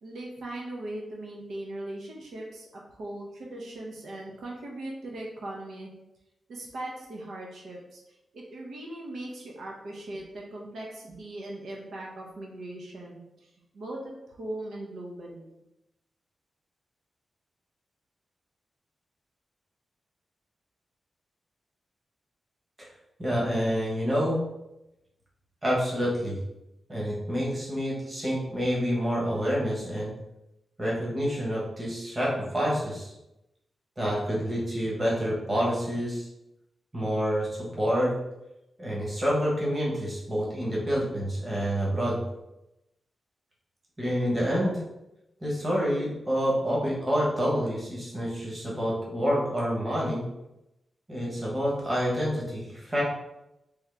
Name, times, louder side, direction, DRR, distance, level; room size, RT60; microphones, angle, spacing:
voice 1, 0.0-5.9 6.5-8.0 8.3-13.5 13.7-14.1 14.4-15.5, right 1 dB, 80° right, -2 dB, 0.8 m, -39 dB
voice 2, 23.2-24.4 25.6-26.3 26.9-30.1 30.8-33.1 34.0-36.3 36.9-38.1 38.8-42.2 44.0-44.8 45.4-50.2 51.1-53.0, equal, 20° right, -5 dB, 1.1 m, -28 dB
3.6 x 2.9 x 3.3 m, 0.90 s
wide cardioid pair, 180°, 0 cm